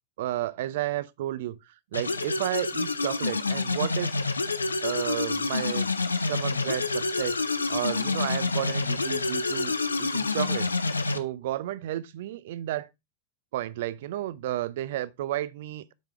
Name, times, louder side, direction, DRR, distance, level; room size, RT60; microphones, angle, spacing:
voice 1, 0.2-1.6 1.9-4.1 4.8-5.9 6.1-10.7 11.1-12.9 13.5-15.9, right 14 dB, 55° right, 0.5 m, -32 dB
sound 1, 1.9-11.2, left 3 dB, 80° left, 0.6 m, -28 dB
7.7 x 4.9 x 3.5 m
figure-of-eight pair, 90°, 0 cm